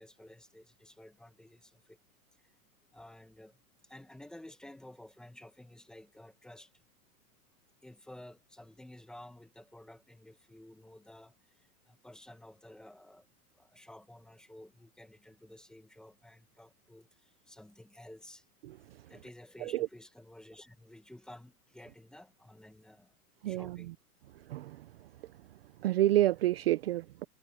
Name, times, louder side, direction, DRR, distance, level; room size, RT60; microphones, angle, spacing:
voice 1, 0.0-2.0 2.9-3.6 3.9-6.7 7.8-13.2 13.5-18.4 19.1-23.1 23.4-23.9, left 1 dB, ahead, 1.4 m, -53 dB
voice 2, 23.4-23.8 24.5-24.9 25.8-27.2, right 14 dB, 40° right, 0.6 m, -28 dB
supercardioid pair, 170°, 45 cm